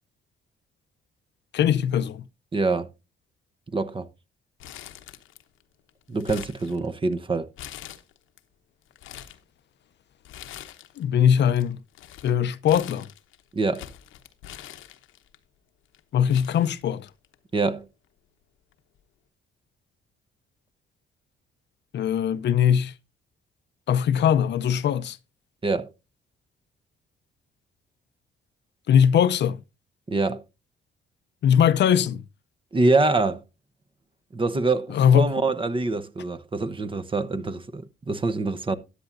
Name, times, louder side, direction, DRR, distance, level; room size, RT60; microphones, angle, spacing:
voice 1, 1.5-2.2 11.0-11.8 12.2-13.1 16.1-17.1 21.9-22.9 23.9-25.2 28.9-29.6 31.4-32.2 34.9-35.3, left 8 dB, 60° left, 0.6 m, -20 dB
voice 2, 2.5-2.9 3.7-4.1 6.1-7.5 13.5-13.9 17.5-17.9 25.6-25.9 30.1-30.4 32.7-33.4 34.3-38.8, right 3 dB, 25° right, 0.9 m, -25 dB
Crumpling crinkling, 4.6-5.6 5.9-7.1 7.6-8.4 8.8-9.4 10.2-11.0 11.3-15.4 15.9-16.0 16.3-17.3 17.7-17.8 18.7-19.0, left 11 dB, 90° left, 0.9 m, -43 dB
13.5 x 9.9 x 2.6 m
cardioid pair, 90°, 20 cm